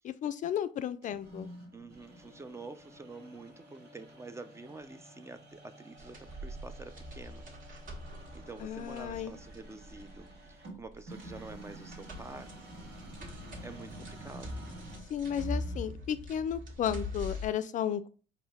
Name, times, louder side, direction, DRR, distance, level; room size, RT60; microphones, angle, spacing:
voice 1, 0.0-1.5 8.6-9.3 15.1-18.1, left 9 dB, 50° left, 0.4 m, -34 dB
sound 1, 1.0-16.0, right 1 dB, 75° right, 2.1 m, -51 dB
voice 2, 1.7-7.4 8.3-12.5 13.6-14.6, right 3 dB, 15° right, 0.4 m, -48 dB
sound 2, 6.0-17.5, left 1 dB, 55° right, 1.7 m, -43 dB
4.4 x 3.2 x 3.5 m
cardioid pair, 110°, 17 cm